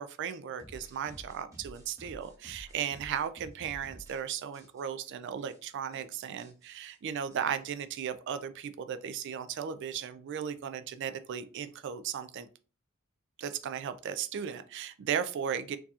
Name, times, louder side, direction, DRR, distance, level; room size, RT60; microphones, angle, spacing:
voice 1, 0.0-12.5 13.4-15.8, right 8 dB, 55° right, 11 dB, 0.3 m, -36 dB
sound 1, 0.6-4.2 4.5-5.1 5.5-5.6 5.8-6.0 6.4-8.1, equal, 15° right, 0.8 m, -52 dB
4.4 x 2.8 x 2.4 m, 0.35 s
head